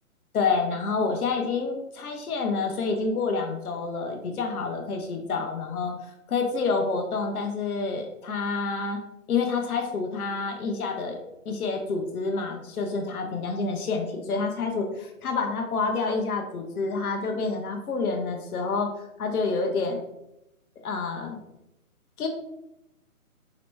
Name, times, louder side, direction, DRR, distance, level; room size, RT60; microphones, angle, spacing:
voice 1, 0.3-5.9 6.3-9.0 9.3-11.2 11.5-20.0 20.8-21.4 22.2-22.3, left 4 dB, 75° left, 3 dB, 0.8 m, -28 dB
3.1 x 2.9 x 3.2 m, 0.86 s
hypercardioid pair, 170°, 44 cm